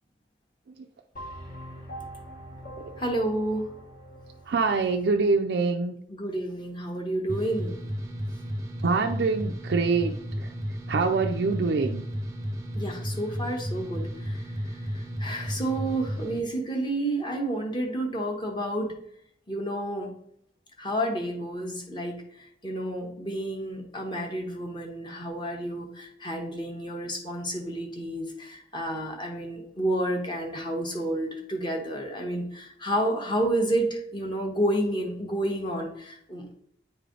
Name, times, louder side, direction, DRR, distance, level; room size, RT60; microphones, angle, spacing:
sound 1, 1.2-5.4, right 1 dB, 50° left, 1.2 m, -43 dB
voice 1, 3.0-3.7 6.1-7.8 12.7-18.9 19.5-20.1 20.8-36.6, right 1 dB, 25° left, 1 dB, 1.1 m, -30 dB
voice 2, 4.5-5.9 8.8-10.5 10.9-12.1, right 4 dB, 70° right, 4 dB, 0.4 m, -25 dB
sound 2, 7.3-16.4, equal, 15° right, 0.6 m, -33 dB
9.2 x 3.3 x 3.8 m, 0.69 s
head